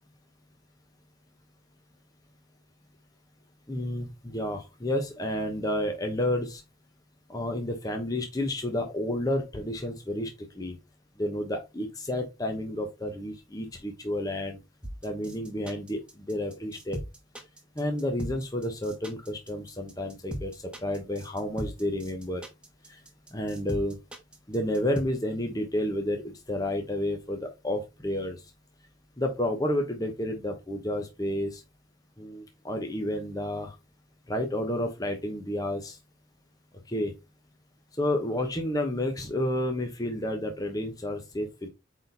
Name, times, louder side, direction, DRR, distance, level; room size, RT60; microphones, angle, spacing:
voice 1, 3.7-6.6 7.3-10.3 10.6-10.8 11.2-14.6 15.0-16.0 16.3-17.0 17.8-22.4 22.9-23.0 23.3-24.0 24.5-28.4 29.2-31.6 32.2-33.7 34.3-36.0 36.9-37.1 38.0-41.7, left 1 dB, 20° left, 4 dB, 0.9 m, -30 dB
sound 1, 14.8-25.0, equal, 5° right, 1.3 m, -38 dB
8.6 x 4.1 x 3.4 m, 0.24 s
head